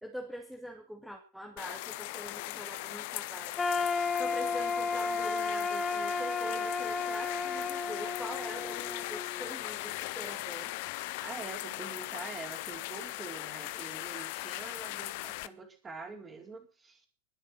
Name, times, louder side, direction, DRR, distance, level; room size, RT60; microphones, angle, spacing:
voice 1, 0.0-10.7, equal, ahead, 2 dB, 2.3 m, -44 dB
sound 1, 1.6-15.5, left 20 dB, 50° left, 0.7 m, -39 dB
sound 2, 3.6-9.5, left 4 dB, 15° left, 1.4 m, -33 dB
voice 2, 11.2-17.1, right 4 dB, 20° right, 3 dB, 4.4 m, -45 dB
21.5 x 8.1 x 6.2 m, 0.37 s
figure-of-eight pair, 90°, 0 cm